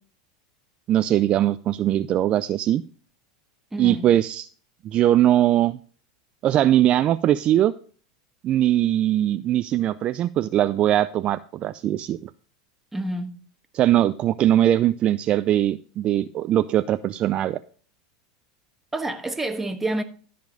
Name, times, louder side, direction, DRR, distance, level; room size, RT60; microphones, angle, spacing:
voice 1, 0.9-2.8 3.8-4.5 4.8-5.8 6.4-7.7 8.4-12.2 13.7-17.6, right 12 dB, 40° right, 0.4 m, -21 dB
voice 2, 3.7-4.1 12.9-13.4 18.9-20.0, right 2 dB, 10° right, 1.3 m, -28 dB
13.0 x 5.1 x 5.2 m
hypercardioid pair, 100°, 3 cm